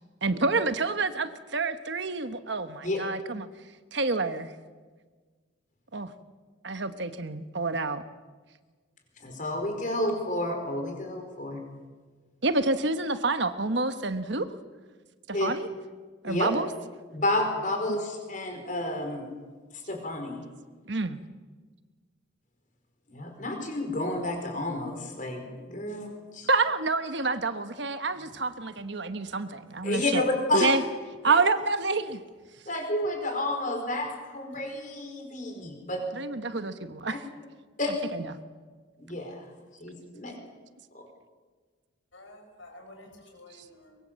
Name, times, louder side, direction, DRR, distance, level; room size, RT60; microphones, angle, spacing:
voice 1, 0.2-3.5 3.9-4.5 5.9-6.1 6.6-8.0 12.4-14.5 15.3-15.7 16.2-16.7 20.9-21.2 26.5-30.2 30.5-30.8 31.2-32.2 36.1-37.2 38.1-38.3, right 3 dB, 60° right, 10 dB, 1.2 m, -28 dB
voice 2, 9.2-11.6 15.3-15.5 16.2-16.5 17.1-19.2 19.7-20.4 23.1-26.1 26.3-26.5 29.8-30.7 31.3-31.4 32.7-36.0 37.1-37.2 37.8-38.0 39.0-39.4 39.8-40.4 40.9-41.1, left 1 dB, 40° left, 4 dB, 4.7 m, -30 dB
voice 3, 42.1-44.0, left 1 dB, 70° left, 3 dB, 6.3 m, -50 dB
23.5 x 22.0 x 7.6 m, 1.4 s
head